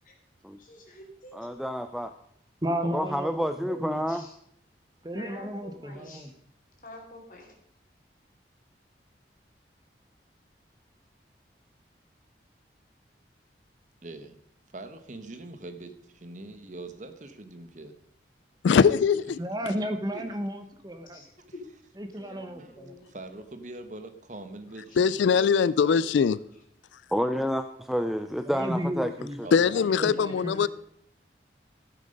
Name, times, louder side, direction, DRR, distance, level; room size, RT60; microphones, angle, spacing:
voice 1, 0.6-1.5 4.1-4.3 5.1-6.3 6.8-7.5 21.1-21.6 22.2-23.1, left 2 dB, 45° left, 3.1 m, -47 dB
voice 2, 1.3-2.1 2.8-4.3 27.1-29.5, equal, ahead, 0.3 m, -29 dB
voice 3, 2.6-3.3 3.6-4.0 5.0-6.3 19.4-21.2 22.0-22.9 28.5-29.4 29.7-30.7, equal, 20° right, 0.9 m, -33 dB
voice 4, 14.0-14.4 14.7-17.9 20.1-20.2 22.6-22.7 23.1-26.1 29.4-30.3, right 2 dB, 40° right, 1.0 m, -43 dB
voice 5, 18.6-19.4 25.0-26.4 29.5-30.7, left 6 dB, 80° left, 0.3 m, -21 dB
14.5 x 7.8 x 5.2 m
head